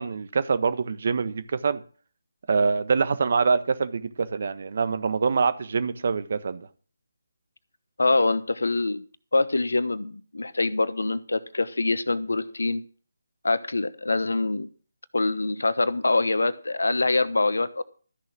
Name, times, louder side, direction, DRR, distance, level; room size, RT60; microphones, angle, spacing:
voice 1, 0.0-1.8 2.5-6.7, right 5 dB, 50° right, 1.3 m, -25 dB
voice 2, 8.0-9.0 9.3-12.8 13.4-14.7 15.1-17.8, left 2 dB, 75° left, 1.0 m, -24 dB
13.0 x 6.4 x 7.7 m
figure-of-eight pair, 150°, 0 cm